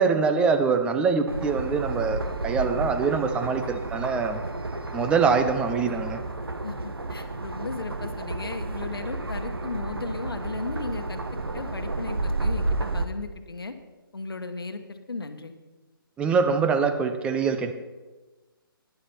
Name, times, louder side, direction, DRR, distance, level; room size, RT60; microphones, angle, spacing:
voice 1, 0.0-4.4 4.9-6.2 16.2-17.7, right 5 dB, 10° right, 8 dB, 0.6 m, -24 dB
sound 1, 1.3-13.0, right 2 dB, 85° right, 1.1 m, -31 dB
voice 2, 6.6-11.2 11.5-13.7 14.1-15.5, left 3 dB, 80° left, 7 dB, 1.2 m, -36 dB
12.5 x 10.5 x 4.4 m, 1.2 s
figure-of-eight pair, 145°, 12 cm